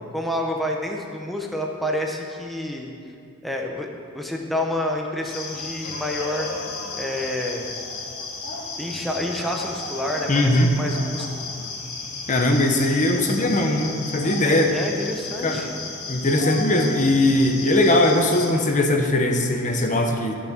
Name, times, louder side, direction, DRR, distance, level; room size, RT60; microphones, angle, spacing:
voice 1, 0.1-2.9 3.4-6.5 7.0-7.8 8.8-11.4 14.7-15.7, left 1 dB, ahead, 0 dB, 1.0 m, -28 dB
sound 1, 5.2-18.5, left 3 dB, 80° left, 2.1 m, -34 dB
voice 2, 10.3-10.7 12.3-14.7 15.4-15.7 16.1-20.4, left 1 dB, 35° left, 3 dB, 1.0 m, -20 dB
13.0 x 7.2 x 7.3 m, 2.5 s
head